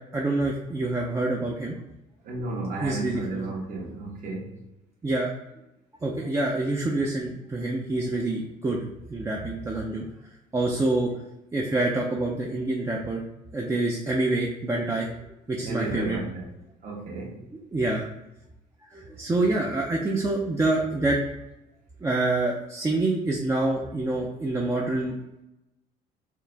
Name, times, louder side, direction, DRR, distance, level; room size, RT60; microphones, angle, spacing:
voice 1, 0.1-1.7 2.8-3.4 5.0-5.3 6.0-10.1 10.5-11.1 11.5-13.2 13.5-15.1 15.5-16.2 17.7-18.1 18.9-21.2 22.0-25.1, right 2 dB, 15° right, -2 dB, 0.5 m, -26 dB
voice 2, 2.2-4.6 15.6-16.5 16.8-17.4, right 3 dB, 55° right, -1 dB, 1.3 m, -33 dB
4.6 x 2.4 x 3.4 m, 0.91 s
cardioid pair, 110°, 17 cm